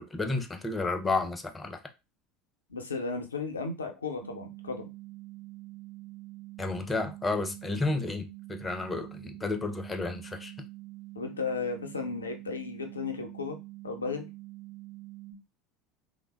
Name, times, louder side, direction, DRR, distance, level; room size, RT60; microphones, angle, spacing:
voice 1, 0.0-1.8 6.6-10.5, left 3 dB, 20° left, 0.4 m, -31 dB
voice 2, 2.7-4.9 11.2-13.6 13.8-14.3, left 4 dB, 80° left, 0.5 m, -34 dB
sound 1, 4.2-15.3, right 19 dB, 60° right, 0.4 m, -46 dB
3.1 x 2.0 x 2.2 m
figure-of-eight pair, 70°, 0 cm